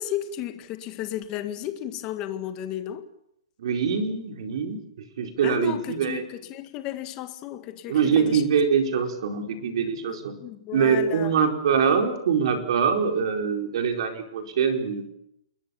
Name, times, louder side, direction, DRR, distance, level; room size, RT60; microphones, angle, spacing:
voice 1, 0.0-3.0 5.4-8.4 10.0-11.3, left 12 dB, 20° left, 9 dB, 1.9 m, -33 dB
voice 2, 3.6-4.8 5.2-6.2 7.9-10.4 10.7-15.1, right 6 dB, 45° right, 4 dB, 4.7 m, -24 dB
28.5 x 21.5 x 7.2 m, 0.77 s
hypercardioid pair, 170°, 4 cm